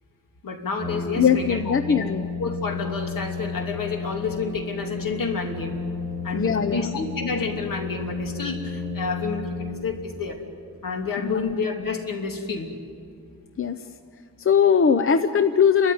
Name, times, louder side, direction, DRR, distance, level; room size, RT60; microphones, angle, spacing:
voice 1, 0.4-2.1 2.4-5.8 6.2-10.4 10.8-12.7, left 4 dB, 65° left, 2 dB, 3.0 m, -29 dB
Brass instrument, 0.8-10.3, left 4 dB, 5° left, 5.1 m, -32 dB
voice 2, 1.2-2.3 6.3-6.9 11.2-11.5 13.6-13.8 14.4-15.9, left 7 dB, 40° left, 8 dB, 0.7 m, -20 dB
30.0 x 13.5 x 9.4 m, 2.2 s
wide cardioid pair, 125°, 35 cm